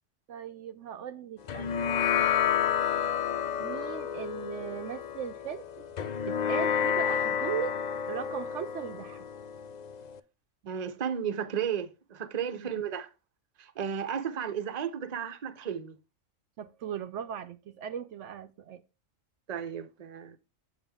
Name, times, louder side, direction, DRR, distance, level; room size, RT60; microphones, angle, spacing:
voice 1, 0.3-1.8 3.6-5.6 6.3-7.7 8.1-9.2 12.6-12.7 16.6-18.8, right 9 dB, 70° right, 0.8 m, -38 dB
sound 1, 1.5-10.2, left 8 dB, 75° left, 0.4 m, -30 dB
voice 2, 10.7-13.1 13.6-16.0 19.5-20.4, right 8 dB, 40° right, 0.7 m, -34 dB
8.0 x 7.1 x 3.5 m
omnidirectional pair, 1.4 m